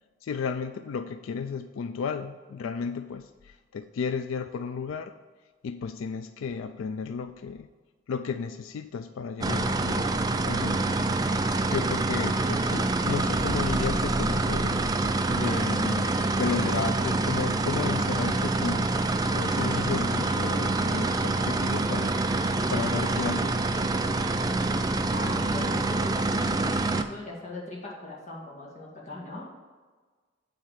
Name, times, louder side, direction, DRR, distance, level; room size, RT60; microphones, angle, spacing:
voice 1, 0.2-5.1 5.6-7.7 8.1-10.1 10.4-10.9 11.7-15.0 15.3-18.9 19.3-22.1 22.7-23.7, left 5 dB, 80° left, 10 dB, 0.3 m, -33 dB
sound 1, 9.4-27.0, right 2 dB, 20° right, 0.3 m, -26 dB
sound 2, 13.4-16.1, right 1 dB, 65° right, 0.8 m, -37 dB
voice 2, 25.1-26.8 27.1-29.6, left 2 dB, 35° left, -4 dB, 2.0 m, -40 dB
9.2 x 3.8 x 6.6 m, 1.4 s
head